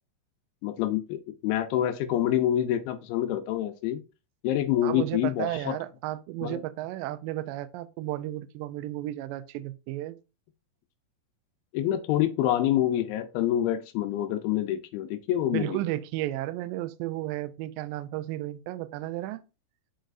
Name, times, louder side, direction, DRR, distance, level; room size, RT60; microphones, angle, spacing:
voice 1, 0.6-4.0 4.4-5.8 6.4-6.6 11.7-15.8, left 12 dB, 85° left, 2.6 m, -27 dB
voice 2, 4.8-10.2 15.5-19.4, right 15 dB, 80° right, 2.2 m, -33 dB
10.0 x 4.0 x 2.5 m
omnidirectional pair, 4.3 m